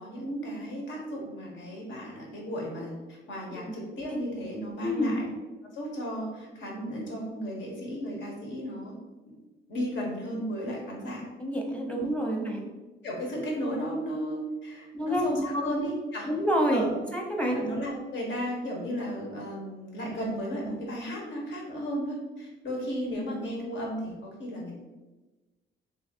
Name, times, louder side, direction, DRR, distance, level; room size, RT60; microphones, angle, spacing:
voice 1, 0.0-5.3 5.6-8.9 9.7-11.3 11.9-12.3 13.0-16.3 16.7-16.9 17.5-24.7, equal, 70° left, -1 dB, 1.3 m, -34 dB
voice 2, 4.8-5.1 11.4-12.6 14.9-15.7 16.3-16.8 17.1-17.7, equal, 5° left, 1 dB, 0.8 m, -28 dB
3.2 x 2.8 x 4.4 m, 1.2 s
cardioid pair, 90°, 20 cm